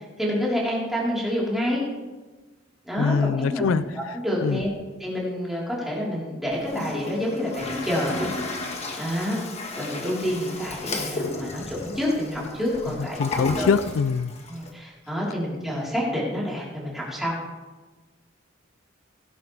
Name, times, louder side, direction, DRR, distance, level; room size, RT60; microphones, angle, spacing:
voice 1, 0.2-1.8 2.8-4.7 5.0-8.3 9.0-9.4 9.7-13.8 14.5-17.4, equal, ahead, -6 dB, 4.0 m, -28 dB
voice 2, 3.0-3.8 4.4-4.6 13.2-14.3, left 5 dB, 85° left, 15 dB, 0.4 m, -23 dB
Toilet flush, 6.5-14.7, left 2 dB, 35° left, 1.5 m, -34 dB
17.0 x 11.0 x 3.4 m, 1.3 s
head